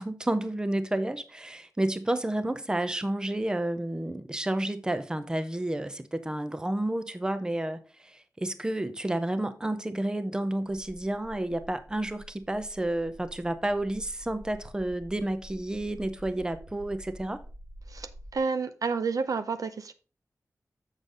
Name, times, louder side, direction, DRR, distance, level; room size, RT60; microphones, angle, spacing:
voice 1, 0.0-17.4, right 1 dB, 10° right, 0.6 m, -30 dB
sound 1, 10.7-18.4, equal, 90° right, 3.1 m, -48 dB
voice 2, 17.9-19.9, right 4 dB, 65° right, 0.6 m, -30 dB
7.2 x 6.4 x 3.8 m
wide cardioid pair, 130°, 6 cm